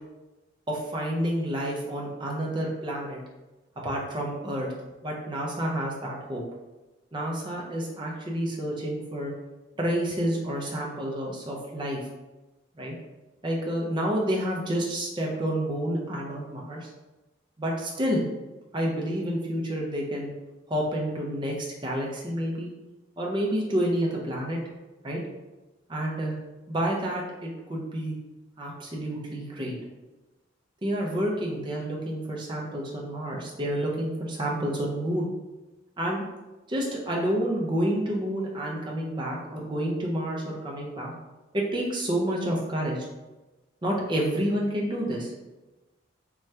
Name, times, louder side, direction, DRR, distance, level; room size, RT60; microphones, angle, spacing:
voice 1, 0.7-3.2 3.8-4.7 5.0-6.4 7.1-9.3 9.8-12.0 12.8-12.9 13.4-16.9 17.6-18.2 18.7-20.3 20.7-22.7 23.2-24.6 25.0-25.2 25.9-26.4 26.7-28.1 28.6-29.8 30.8-35.3 36.0-36.2 36.7-41.1 41.5-43.1 43.8-45.3, equal, 25° right, -2 dB, 0.5 m, -29 dB
2.7 x 2.2 x 3.2 m, 1.1 s
head